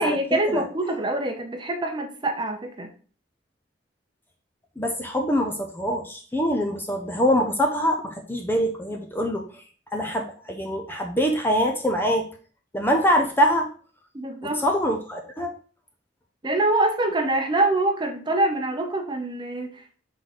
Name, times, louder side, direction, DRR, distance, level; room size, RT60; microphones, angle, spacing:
voice 1, 0.0-2.9 14.1-14.6 16.4-19.8, right 2 dB, 25° right, 4 dB, 0.8 m, -25 dB
voice 2, 4.8-9.5 9.9-12.3 12.7-13.7 14.4-15.5, equal, 10° left, 3 dB, 0.6 m, -24 dB
6.3 x 3.9 x 4.2 m, 0.41 s
head